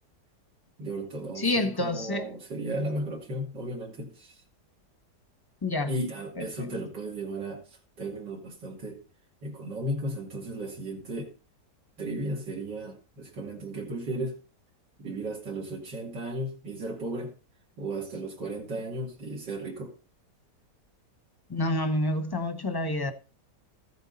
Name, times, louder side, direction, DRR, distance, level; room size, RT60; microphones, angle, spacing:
voice 1, 0.8-4.4 5.9-9.0 9.4-11.3 12.0-14.4 15.0-17.3 17.8-19.9, right 1 dB, 85° right, 3.2 m, -35 dB
voice 2, 1.4-2.3 5.6-5.9 6.4-6.7 21.5-23.1, left 2 dB, 20° left, 0.7 m, -28 dB
14.5 x 8.0 x 4.1 m
omnidirectional pair, 1.9 m